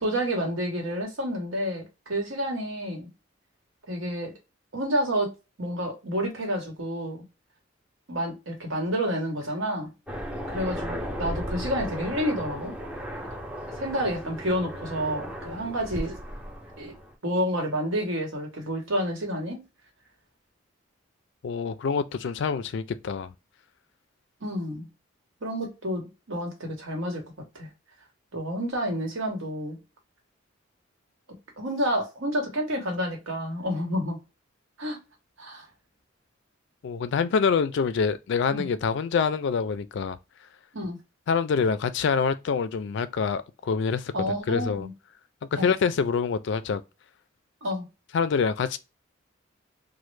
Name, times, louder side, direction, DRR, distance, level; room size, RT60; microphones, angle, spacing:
voice 1, 0.0-3.1 3.9-4.3 4.7-5.3 5.6-7.2 8.1-9.9 10.5-12.8 13.3-13.4 13.8-16.2 16.8-16.9 17.2-19.6 24.4-24.9 25.4-27.2 27.5-27.7 28.3-29.8 31.6-34.2 34.8-35.0 35.4-35.7 38.5-38.7 40.7-41.0 44.1-44.9 45.6-45.7 47.6-47.8, equal, 85° right, 1.1 m, -29 dB
Aircraft, 10.1-17.1, equal, 5° right, 0.5 m, -35 dB
voice 2, 21.4-23.3 36.8-40.2 41.3-44.1 44.5-44.9 45.5-46.8 48.1-48.8, left 5 dB, 60° left, 0.3 m, -26 dB
3.1 x 2.1 x 3.1 m
head